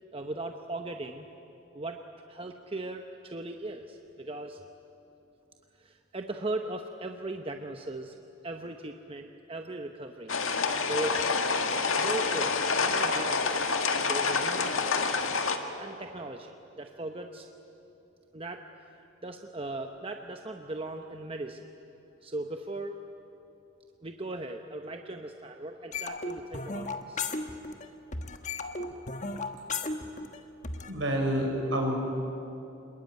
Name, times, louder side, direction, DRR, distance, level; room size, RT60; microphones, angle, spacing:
voice 1, 0.1-1.3 1.7-4.6 5.8-8.2 8.4-10.4 10.9-11.3 11.9-13.6 14.0-15.0 15.8-17.5 18.3-18.7 19.2-21.7 22.2-23.0 24.0-27.2, right 2 dB, 25° right, 4 dB, 0.9 m, -38 dB
sound 1, 10.3-15.6, left 4 dB, 85° left, 1.8 m, -27 dB
sound 2, 25.9-27.9 28.1-30.9, left 3 dB, 35° left, 1.3 m, -35 dB
voice 2, 30.8-31.9, equal, 70° right, 1 dB, 5.9 m, -28 dB
26.5 x 21.0 x 9.4 m, 2.9 s
head